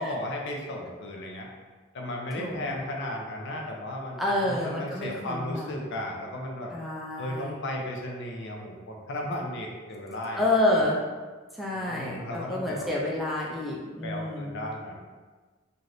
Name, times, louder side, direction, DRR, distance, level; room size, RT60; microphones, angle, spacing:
voice 1, 0.0-1.5 1.9-6.7 7.2-10.9 11.7-12.9 14.0-15.1, left 1 dB, 60° left, 0 dB, 0.5 m, -35 dB
voice 2, 2.4-2.8 4.2-5.8 6.7-7.6 10.4-11.0 11.5-14.6, left 1 dB, ahead, -4 dB, 0.3 m, -29 dB
3.2 x 2.6 x 2.6 m, 1.4 s
head